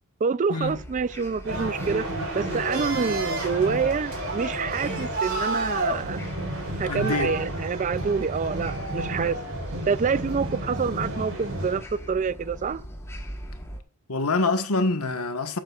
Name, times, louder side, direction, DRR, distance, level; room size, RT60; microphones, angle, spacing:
voice 1, 0.2-2.0 2.3-6.2 6.8-9.4 9.9-12.8, right 5 dB, 35° right, 0.4 m, -27 dB
sound 1, 0.6-13.8, equal, 10° left, 1.6 m, -41 dB
sound 2, 1.4-11.8, right 1 dB, 65° right, 4.3 m, -31 dB
voice 2, 6.8-7.4 14.1-15.6, left 3 dB, 85° left, 1.4 m, -25 dB
12.0 x 8.9 x 2.4 m
head